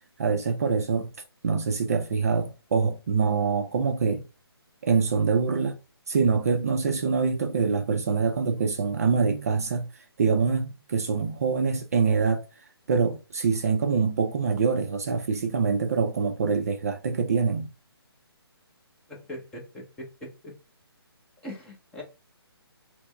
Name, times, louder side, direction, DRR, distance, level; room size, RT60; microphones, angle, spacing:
voice 1, 0.2-1.1 1.4-4.2 4.8-5.8 6.1-12.4 12.9-17.7, right 5 dB, 35° right, 0.4 m, -25 dB
voice 2, 19.1-20.5 21.4-22.0, equal, 5° left, 0.6 m, -41 dB
4.3 x 2.0 x 3.3 m
figure-of-eight pair, 140°, 13 cm